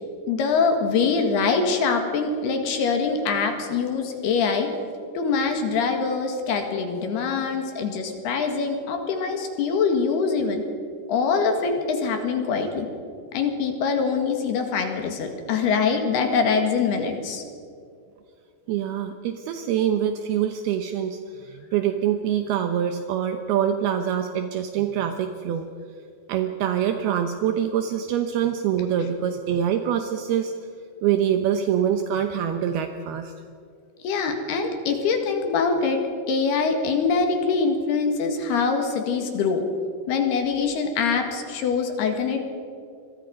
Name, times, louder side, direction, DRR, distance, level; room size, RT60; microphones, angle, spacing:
voice 1, 0.3-4.7 5.2-10.6 11.1-12.9 13.3-17.4 34.0-36.0 36.3-39.6 40.1-42.5, left 5 dB, 60° left, 5 dB, 3.5 m, -24 dB
voice 2, 18.7-25.7 26.3-30.5 31.0-33.3, right 9 dB, 80° right, 7 dB, 2.2 m, -25 dB
27.0 x 22.0 x 5.3 m, 2.4 s
omnidirectional pair, 5.7 m